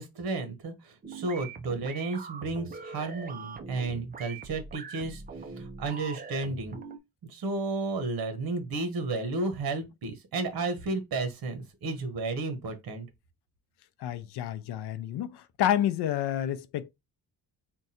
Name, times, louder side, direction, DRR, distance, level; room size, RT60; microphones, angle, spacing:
voice 1, 0.0-6.8 7.3-13.1, right 3 dB, 60° right, 1.2 m, -33 dB
sound 1, 1.0-7.0, right 4 dB, 25° right, 0.4 m, -42 dB
voice 2, 14.0-16.9, left 11 dB, 80° left, 0.6 m, -29 dB
3.7 x 2.3 x 4.1 m
cardioid pair, 145°, 40 cm